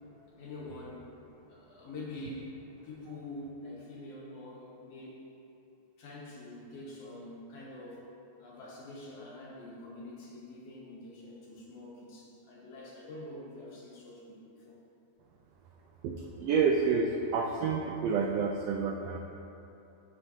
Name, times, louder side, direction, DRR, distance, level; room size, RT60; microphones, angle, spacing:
voice 1, 0.4-1.0 1.5-5.2 6.0-8.1 8.4-14.8, left 2 dB, 65° left, -4 dB, 2.0 m, -45 dB
voice 2, 16.0-19.2, right 5 dB, 85° right, 1 dB, 1.4 m, -29 dB
13.0 x 5.3 x 2.7 m, 2.9 s
omnidirectional pair, 3.4 m